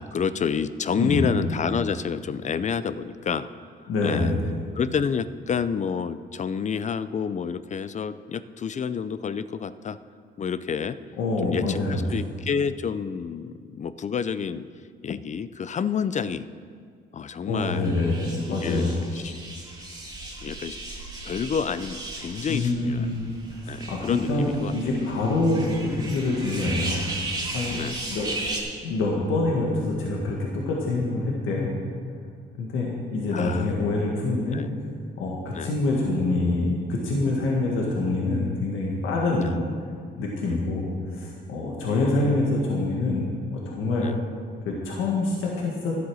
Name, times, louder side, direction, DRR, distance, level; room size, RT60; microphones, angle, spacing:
voice 1, 0.0-3.5 4.0-4.3 4.8-10.0 10.4-11.0 11.4-14.7 15.0-16.5 17.1-17.9 18.5-19.3 20.4-20.8 21.2-23.1 23.7-25.2 25.6-25.7 27.7-28.0 33.3-33.7 34.5-34.7 35.5-35.7 39.4-39.5 40.5-40.6 41.9-42.5 44.0-44.2, left 6 dB, 35° left, 15 dB, 0.4 m, -29 dB
voice 2, 1.0-1.3 3.9-4.4 11.2-12.3 17.5-18.9 22.5-23.3 23.6-27.3 27.5-27.8 28.1-28.3 28.8-31.7 32.6-34.6 35.2-39.6 40.2-40.8 41.1-43.2 43.5-44.1 44.7-45.9, left 2 dB, 85° left, -3 dB, 1.8 m, -25 dB
sound 1, 17.7-28.6, right 2 dB, 20° right, 2.3 m, -36 dB
11.5 x 8.0 x 6.3 m, 2.1 s
cardioid pair, 90°, 20 cm